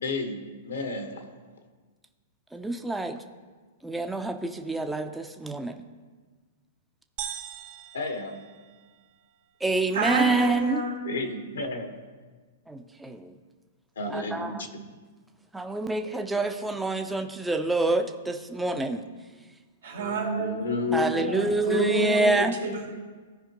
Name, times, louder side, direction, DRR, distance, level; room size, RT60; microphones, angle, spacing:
voice 1, 0.0-1.2 7.9-8.4 11.0-12.0 14.0-15.0 20.1-21.3, left 3 dB, 80° left, 5 dB, 1.3 m, -32 dB
voice 2, 2.5-3.2 3.8-5.7 9.6-10.8 12.7-13.3 14.1-14.5 15.5-19.0 20.9-22.5, right 2 dB, 5° right, 5 dB, 0.6 m, -27 dB
sound 1, 7.2-9.1, right 9 dB, 45° right, 0.7 m, -40 dB
voice 3, 9.9-11.0 19.8-22.9, right 2 dB, 85° right, -1 dB, 2.2 m, -29 dB
15.0 x 5.0 x 3.0 m, 1.4 s
hypercardioid pair, 120°, 0 cm